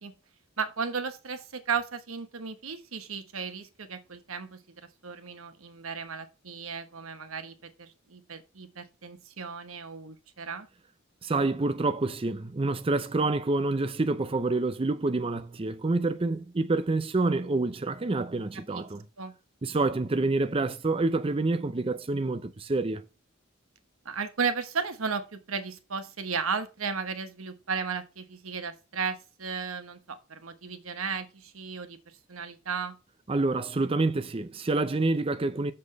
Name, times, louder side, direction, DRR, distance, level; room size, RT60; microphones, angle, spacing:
voice 1, 0.6-10.7 18.7-18.8 19.2-19.3 24.0-32.0 32.3-33.0, right 5 dB, 90° right, 1.2 m, -35 dB
voice 2, 11.2-19.1 19.6-23.1 33.3-35.7, right 2 dB, 25° right, 0.5 m, -27 dB
7.2 x 4.3 x 6.4 m
head